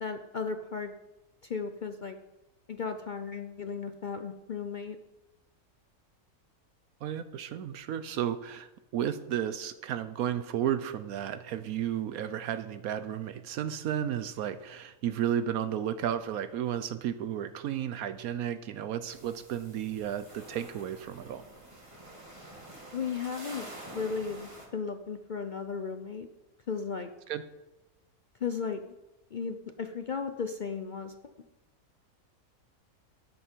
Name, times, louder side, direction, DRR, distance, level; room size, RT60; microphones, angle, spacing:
voice 1, 0.0-0.9 1.4-2.2 2.7-5.0 22.9-23.7 23.9-26.3 26.7-27.1 28.4-28.8 29.3-31.1, left 5 dB, 70° left, 7 dB, 0.4 m, -35 dB
voice 2, 7.0-21.4 27.3-27.4, right 10 dB, 75° right, 12 dB, 1.0 m, -33 dB
sound 1, 19.1-24.7, right 1 dB, 20° right, 2.2 m, -48 dB
12.5 x 10.0 x 4.5 m, 1.0 s
omnidirectional pair, 1.6 m